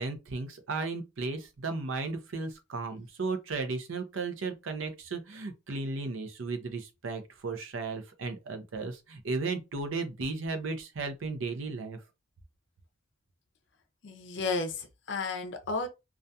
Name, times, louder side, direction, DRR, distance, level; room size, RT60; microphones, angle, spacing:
voice 1, 0.0-12.0, right 3 dB, 80° right, 0.6 m, -35 dB
voice 2, 14.0-15.9, left 3 dB, 60° left, 0.5 m, -33 dB
2.6 x 2.3 x 2.2 m
head